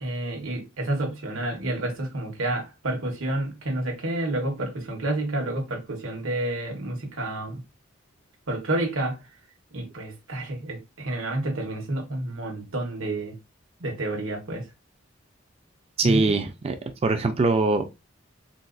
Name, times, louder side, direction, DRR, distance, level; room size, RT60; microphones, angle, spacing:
voice 1, 0.0-7.6 8.5-9.2 9.7-13.4 13.8-14.6 16.0-16.3, right 1 dB, 85° right, 1.1 m, -29 dB
voice 2, 16.0-16.8 17.0-17.8, right 3 dB, 30° right, 0.4 m, -22 dB
3.9 x 2.5 x 2.3 m
head